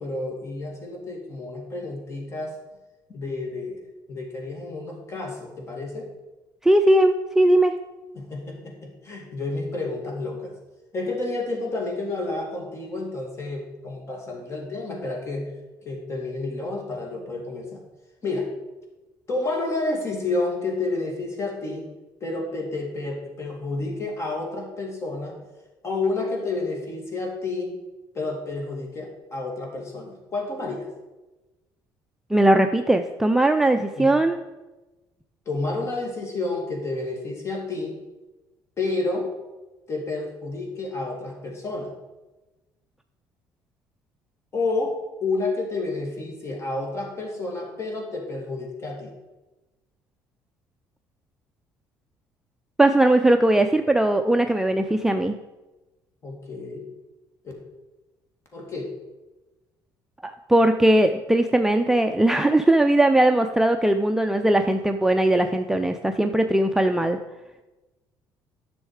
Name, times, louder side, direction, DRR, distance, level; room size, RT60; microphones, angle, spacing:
voice 1, 0.0-2.6 3.1-3.8 4.1-6.1 8.1-10.5 10.9-15.5 15.8-17.8 18.2-18.5 19.3-21.9 22.2-25.4 25.8-27.8 28.1-30.9 34.0-34.2 35.5-38.0 38.8-39.3 39.9-41.9 44.5-49.1 56.2-56.9 58.5-58.9, left 2 dB, 35° left, 1 dB, 2.4 m, -30 dB
voice 2, 6.6-7.7 32.3-34.4 52.8-55.4 60.2-67.2, right 1 dB, 5° right, 5 dB, 0.4 m, -19 dB
10.0 x 6.3 x 4.9 m, 1.1 s
cardioid pair, 115°, 8 cm